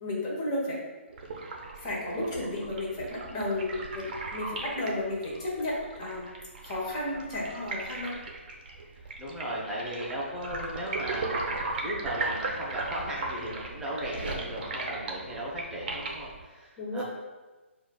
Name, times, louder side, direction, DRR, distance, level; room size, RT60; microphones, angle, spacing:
voice 1, 0.0-0.8 1.8-6.3 6.6-8.2 16.8-17.0, left 1 dB, 25° left, -4 dB, 1.2 m, -33 dB
sound 1, 1.1-16.4, right 3 dB, 45° right, 0.7 m, -37 dB
voice 2, 9.2-17.0, right 1 dB, 5° right, -6 dB, 0.7 m, -36 dB
6.8 x 2.5 x 2.3 m, 1.2 s
figure-of-eight pair, 135°, 7 cm